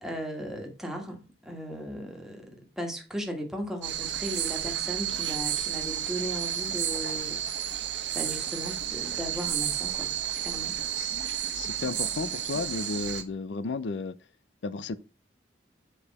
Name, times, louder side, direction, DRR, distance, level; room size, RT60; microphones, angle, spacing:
voice 1, 0.0-2.5 2.8-7.9 8.1-10.1 10.4-10.8, equal, 5° right, 1.6 m, -37 dB
sound 1, 3.8-13.2, right 10 dB, 85° right, 1.1 m, -31 dB
voice 2, 11.6-14.1 14.6-15.0, left 3 dB, 85° left, 0.5 m, -33 dB
6.9 x 4.8 x 4.1 m
head